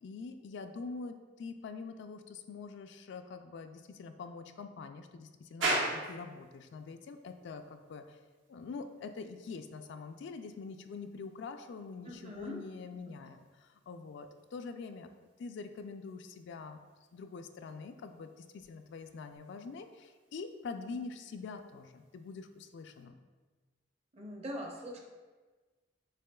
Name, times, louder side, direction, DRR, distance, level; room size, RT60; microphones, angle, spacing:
voice 1, 0.0-8.2 8.5-16.8 17.1-23.2, left 4 dB, 65° left, 7 dB, 0.3 m, -45 dB
sound 1, 5.6-23.1, right 2 dB, 75° right, 1.0 m, -44 dB
voice 2, 12.1-12.6 24.1-25.0, equal, 35° right, 1 dB, 0.7 m, -42 dB
6.7 x 3.5 x 2.3 m, 1.3 s
head